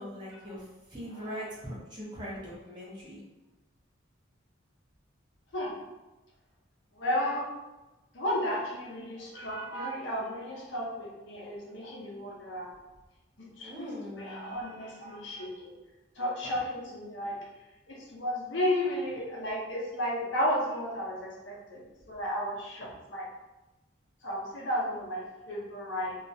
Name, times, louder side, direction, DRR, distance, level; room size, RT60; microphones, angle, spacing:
voice 1, 0.0-3.2 13.6-14.5, equal, 25° right, -7 dB, 0.6 m, -41 dB
voice 2, 7.0-7.5 8.1-12.7 13.6-15.7 16.2-17.4 17.9-23.3 24.2-26.1, equal, 70° left, -4 dB, 0.6 m, -33 dB
2.3 x 2.1 x 2.6 m, 1.1 s
head